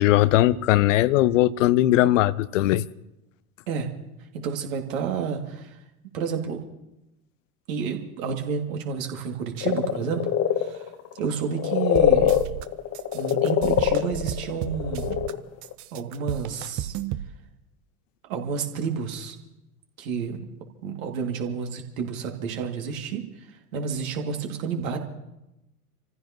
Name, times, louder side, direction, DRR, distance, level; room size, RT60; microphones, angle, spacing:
voice 1, 0.0-2.9, left 15 dB, 55° left, 0.6 m, -19 dB
voice 2, 4.4-5.7 6.1-6.6 7.7-10.2 10.6-10.8 11.2-12.3 13.1-15.2 15.9-17.0 18.3-19.3 20.0-20.4 20.8-23.2 23.7-25.0, right 6 dB, 60° right, 2.7 m, -30 dB
sound 1, 9.6-15.4 15.6-15.7, left 11 dB, 35° left, 1.3 m, -23 dB
sound 2, 11.9-12.6 12.9-15.3 15.6-17.3, right 13 dB, 40° right, 0.8 m, -33 dB
28.0 x 15.0 x 3.1 m
figure-of-eight pair, 80°, 46 cm